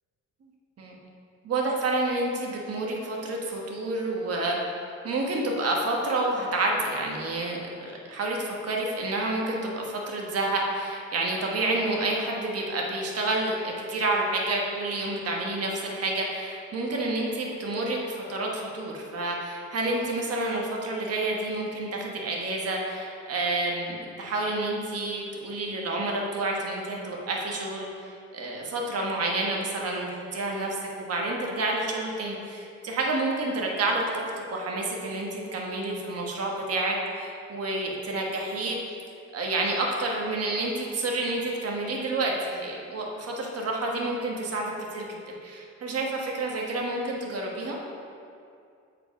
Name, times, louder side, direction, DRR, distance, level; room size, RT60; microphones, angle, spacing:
voice 1, 1.4-4.6 5.0-34.0 34.5-38.8 39.3-47.8, right 2 dB, 55° right, -1 dB, 1.3 m, -29 dB
7.1 x 4.9 x 5.0 m, 2.4 s
cardioid pair, 90°, 30 cm